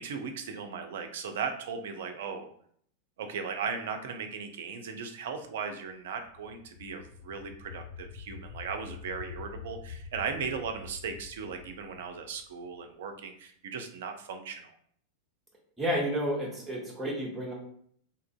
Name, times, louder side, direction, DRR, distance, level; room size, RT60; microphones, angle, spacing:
voice 1, 0.0-2.5 3.2-14.7, right 6 dB, 55° right, 6 dB, 0.4 m, -37 dB
sound 1, 6.1-12.9, left 7 dB, 50° left, 0.5 m, -46 dB
voice 2, 15.8-17.5, equal, 10° right, -3 dB, 0.7 m, -31 dB
2.7 x 2.4 x 2.3 m, 0.62 s
figure-of-eight pair, 90°, 0 cm